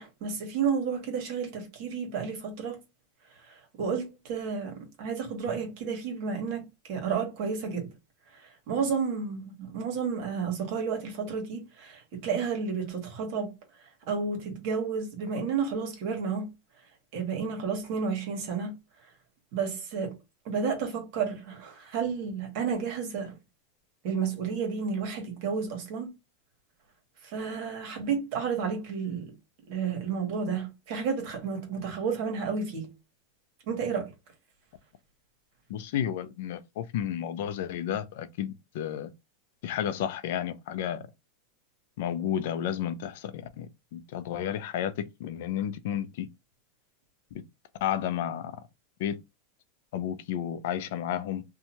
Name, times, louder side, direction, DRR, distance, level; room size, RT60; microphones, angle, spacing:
voice 1, 0.0-2.8 3.4-7.9 8.3-13.6 14.1-16.5 17.1-18.7 19.5-20.2 20.4-23.4 24.0-26.1 27.2-29.3 29.7-32.9 33.7-34.1, right 6 dB, 55° right, 1.2 m, -31 dB
voice 2, 35.7-39.1 39.6-41.0 42.0-46.3 47.3-47.4 47.8-48.5 49.0-49.2 49.9-51.4, left 10 dB, 65° left, 0.5 m, -32 dB
2.7 x 2.3 x 2.9 m
supercardioid pair, 135°, 0 cm